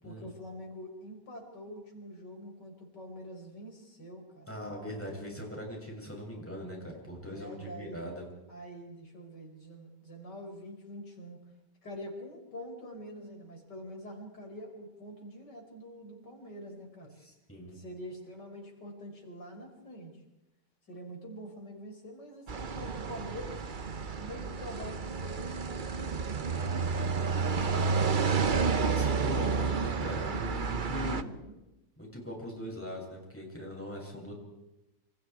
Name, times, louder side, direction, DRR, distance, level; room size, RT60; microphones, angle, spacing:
voice 1, 0.0-4.6 7.2-8.0 8.5-11.4 11.8-17.1 17.7-20.1 20.9-23.6 24.2-27.0 27.3-28.9 31.0-31.6, equal, 85° left, 1 dB, 6.0 m, -45 dB
voice 2, 4.5-8.2 17.2-17.8 28.8-31.3 32.0-34.3, equal, 5° left, -1 dB, 7.2 m, -40 dB
sound 1, 22.5-31.2, right 5 dB, 35° right, 0.9 m, -30 dB
28.5 x 27.0 x 4.7 m, 0.97 s
omnidirectional pair, 1.8 m